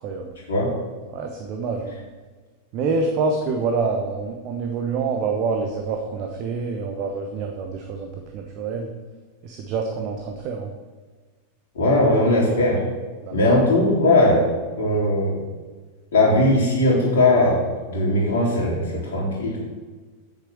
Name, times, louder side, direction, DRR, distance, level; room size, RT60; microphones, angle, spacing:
voice 1, 1.1-1.9 2.7-8.9 9.4-10.7 13.2-13.4 13.7-13.8 14.9-15.0, right 4 dB, 40° right, 3 dB, 1.1 m, -26 dB
voice 2, 11.7-12.8 13.3-14.4 14.8-15.4 16.1-17.6 17.9-19.6, left 1 dB, 60° left, -8 dB, 3.1 m, -19 dB
8.2 x 6.8 x 6.3 m, 1.4 s
figure-of-eight pair, 90°, 0 cm